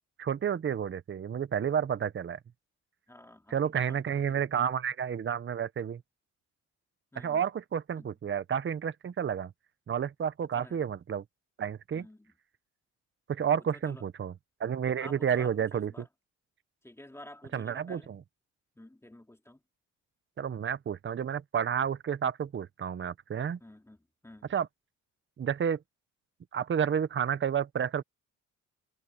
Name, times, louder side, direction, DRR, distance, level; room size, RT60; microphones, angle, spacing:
voice 1, 0.2-2.4 3.5-6.0 7.1-9.5 9.9-11.2 11.6-12.1 13.3-14.3 14.6-16.1 17.5-18.2 20.4-23.6 24.5-24.7 25.4-25.8 26.5-28.0, right 8 dB, 40° right, 1.1 m, -30 dB
voice 2, 3.1-4.7 7.1-7.4 8.0-8.1 10.5-10.9 11.9-12.3 13.7-14.0 15.0-16.1 16.8-18.2 18.7-19.6 23.6-24.0 24.2-24.5, left 1 dB, 10° left, 3.2 m, -51 dB
cardioid pair, 90°, 30 cm